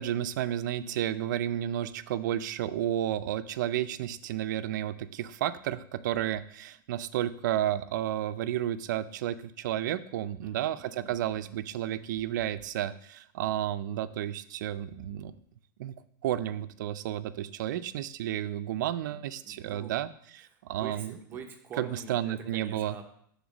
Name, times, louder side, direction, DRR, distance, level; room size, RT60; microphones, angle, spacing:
voice 1, 0.0-15.3 15.8-15.9 16.2-21.2 21.8-23.0, right 11 dB, 60° right, 12 dB, 0.5 m, -32 dB
voice 2, 10.4-11.6 19.1-20.0 20.8-23.0, right 6 dB, 20° right, 4 dB, 0.6 m, -46 dB
7.1 x 3.6 x 6.3 m, 0.67 s
supercardioid pair, 165°, 11 cm